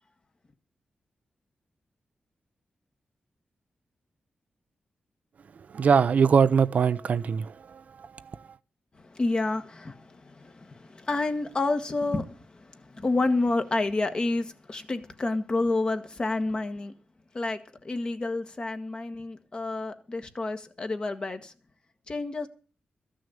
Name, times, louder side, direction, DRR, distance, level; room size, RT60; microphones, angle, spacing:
voice 1, 5.7-8.4, right 6 dB, 60° right, 0.6 m, -23 dB
voice 2, 9.0-16.9 17.3-21.5 22.1-22.5, left 2 dB, 35° left, 1.4 m, -29 dB
14.0 x 6.3 x 8.6 m
wide cardioid pair, 125°, 3 cm